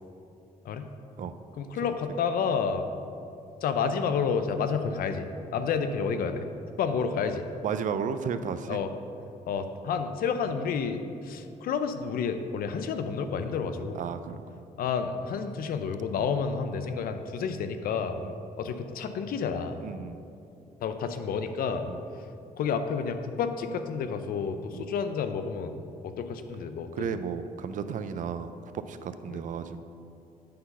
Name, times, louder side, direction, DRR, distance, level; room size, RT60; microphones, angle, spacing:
voice 1, 1.6-2.9 3.6-6.4 6.8-7.5 8.7-8.9 9.5-14.0 14.8-18.2 18.6-19.8 20.8-21.9 22.6-27.1 29.3-29.4, left 6 dB, 80° left, 8 dB, 0.5 m, -30 dB
voice 2, 7.6-8.8 13.9-14.4 18.2-18.3 19.8-20.2 21.9-22.0 24.7-24.8 26.9-29.8, right 7 dB, 60° right, 11 dB, 0.4 m, -33 dB
8.5 x 3.9 x 5.4 m, 2.7 s
cardioid pair, 110°, 15 cm